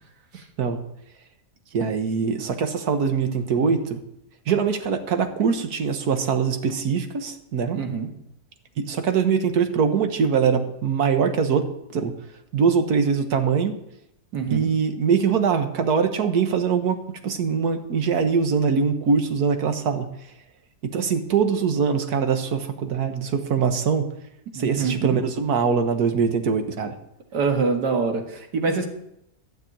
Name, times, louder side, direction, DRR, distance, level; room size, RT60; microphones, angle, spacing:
voice 1, 1.7-4.0 4.5-7.8 8.8-11.6 11.9-12.2 12.5-13.7 14.5-20.1 20.8-24.1 24.5-26.9, right 6 dB, 70° right, 8 dB, 1.7 m, -22 dB
voice 2, 7.7-8.1 14.3-14.7 24.5-25.2 27.3-28.9, right 4 dB, 90° right, 4 dB, 2.2 m, -25 dB
12.0 x 6.6 x 8.6 m, 0.80 s
omnidirectional pair, 1.7 m